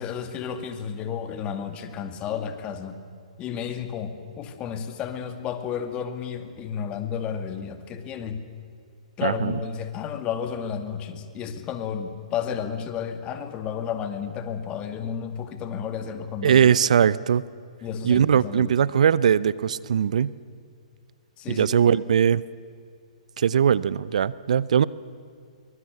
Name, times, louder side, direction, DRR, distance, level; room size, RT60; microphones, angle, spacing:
voice 1, 0.0-3.0 3.4-8.5 9.2-16.7 17.8-18.7 21.4-21.9, left 7 dB, 25° left, 8 dB, 2.2 m, -32 dB
voice 2, 9.2-9.5 16.4-17.4 18.0-20.3 21.5-22.4 23.4-24.8, right 8 dB, 65° right, 20 dB, 0.6 m, -20 dB
23.5 x 21.5 x 8.0 m, 2.3 s
hypercardioid pair, 125°, 4 cm